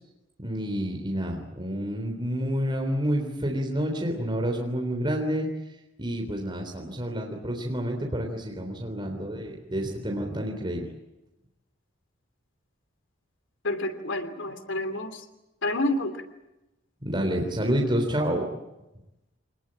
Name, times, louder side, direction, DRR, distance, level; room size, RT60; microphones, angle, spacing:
voice 1, 0.4-5.5 6.0-10.9 17.0-18.5, equal, 25° right, 2 dB, 3.5 m, -29 dB
voice 2, 13.6-15.2 15.6-16.2, left 1 dB, 70° left, 8 dB, 3.1 m, -29 dB
26.0 x 20.0 x 8.9 m, 0.95 s
head